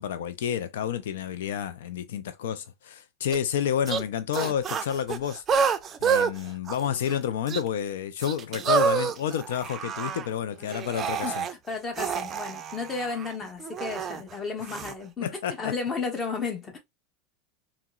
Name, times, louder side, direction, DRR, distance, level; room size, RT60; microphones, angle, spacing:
voice 1, 0.0-5.4 6.0-11.5 15.2-15.7, left 9 dB, 90° left, 0.3 m, -30 dB
sound 1, 3.3-3.4 3.9-4.0 4.3-6.3 6.7-7.1 7.5-7.6 8.2-10.3 10.7-11.5 12.0-14.2 14.6-14.9, right 6 dB, 30° right, 0.4 m, -28 dB
voice 2, 11.2-16.8, left 4 dB, 25° left, 0.9 m, -33 dB
3.7 x 2.0 x 2.2 m
supercardioid pair, 125°, 0 cm